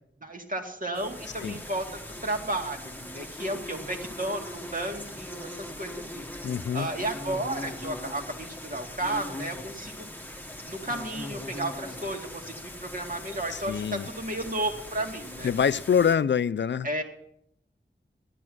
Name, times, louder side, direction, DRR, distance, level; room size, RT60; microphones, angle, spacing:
voice 1, 0.2-10.1 10.6-15.5 16.8-17.0, right 1 dB, 45° right, 2.1 m, -33 dB
sound 1, 0.9-16.1, left 1 dB, 10° left, 1.1 m, -40 dB
voice 2, 6.4-6.9 13.5-14.1 15.4-16.9, left 7 dB, 70° left, 0.4 m, -25 dB
12.5 x 11.0 x 6.2 m
wide cardioid pair, 80°, 19 cm